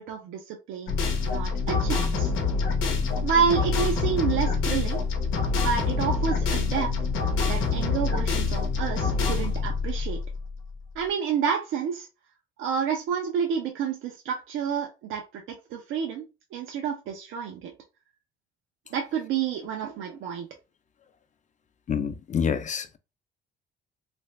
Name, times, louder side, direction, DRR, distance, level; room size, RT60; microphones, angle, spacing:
voice 1, 0.0-2.3 3.2-5.0 5.6-6.9 7.5-10.2 11.0-12.1 12.6-16.2 16.5-17.7 18.9-20.5, right 7 dB, 90° right, 0.6 m, -29 dB
sound 1, 0.9-10.8, left 4 dB, 90° left, 0.8 m, -26 dB
voice 2, 21.9-23.0, left 7 dB, 40° left, 0.5 m, -27 dB
3.2 x 2.5 x 3.1 m
cardioid pair, 90°, 20 cm